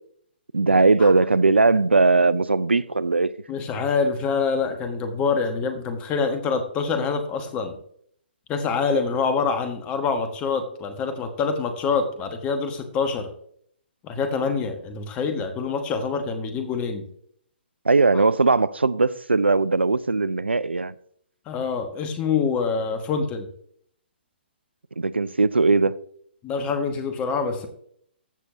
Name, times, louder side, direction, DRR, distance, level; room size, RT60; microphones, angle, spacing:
voice 1, 0.5-3.3 17.9-20.9 25.0-26.0, right 3 dB, 85° right, 0.4 m, -19 dB
voice 2, 3.5-7.7 8.5-13.3 14.0-17.1 18.1-18.2 21.5-23.5 26.4-27.7, left 5 dB, 20° left, 1.2 m, -25 dB
14.5 x 6.6 x 2.8 m
figure-of-eight pair, 125°, 6 cm